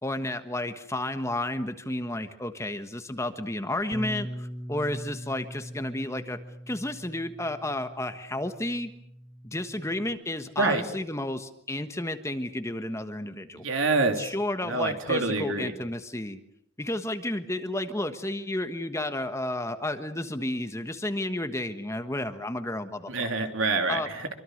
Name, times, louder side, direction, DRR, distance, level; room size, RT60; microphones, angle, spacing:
voice 1, 0.0-6.4 6.7-8.9 9.4-13.6 14.2-16.4 16.8-23.1 23.9-24.1, left 1 dB, 15° left, 9 dB, 1.3 m, -32 dB
Bass guitar, 3.9-10.2, equal, 20° right, 1.9 m, -41 dB
voice 2, 13.5-14.3 14.6-15.7 23.1-24.3, right 3 dB, 70° right, 5 dB, 3.5 m, -26 dB
26.0 x 24.5 x 6.6 m, 0.72 s
head